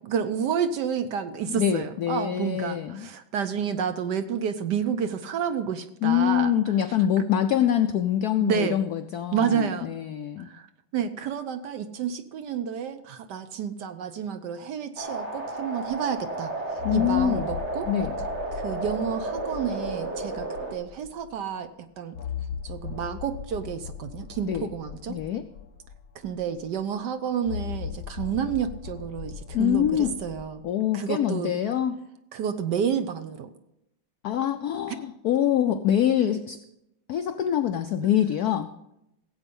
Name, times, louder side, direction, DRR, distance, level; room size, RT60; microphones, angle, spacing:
voice 1, 0.0-6.5 8.4-8.8 9.3-9.9 10.4-17.9 18.5-22.1 22.6-25.2 26.1-30.6 30.9-31.5 32.3-33.5 34.9-35.0, right 7 dB, 65° right, 10 dB, 1.1 m, -30 dB
voice 2, 1.5-3.1 6.0-10.5 16.8-17.5 17.9-18.1 24.4-24.7 25.1-25.4 29.5-30.2 30.6-32.0 34.2-36.6 37.1-38.7, left 10 dB, 80° left, 9 dB, 0.8 m, -25 dB
sound 1, 15.0-20.7, right 2 dB, 35° right, 2.1 m, -32 dB
sound 2, 15.9-16.0 16.8-21.3 22.1-26.8 27.5-30.5, left 8 dB, 55° left, 1.2 m, -38 dB
16.5 x 8.1 x 5.4 m, 0.84 s
omnidirectional pair, 2.3 m